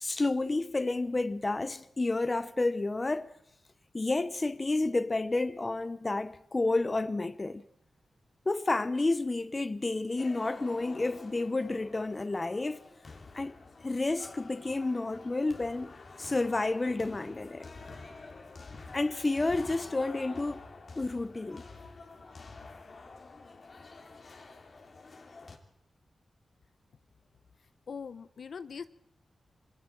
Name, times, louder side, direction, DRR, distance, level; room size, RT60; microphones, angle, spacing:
voice 1, 0.0-3.3 3.9-7.6 8.5-12.8 13.3-13.5 13.8-15.9 16.2-17.7 18.9-20.7 21.0-21.6, left 2 dB, 30° left, 0.9 m, -30 dB
sound 1, 10.2-25.6, left 3 dB, 50° left, 2.7 m, -48 dB
voice 2, 27.9-28.9, left 6 dB, 70° left, 0.8 m, -41 dB
27.5 x 21.5 x 4.6 m
wide cardioid pair, 95°, 0 cm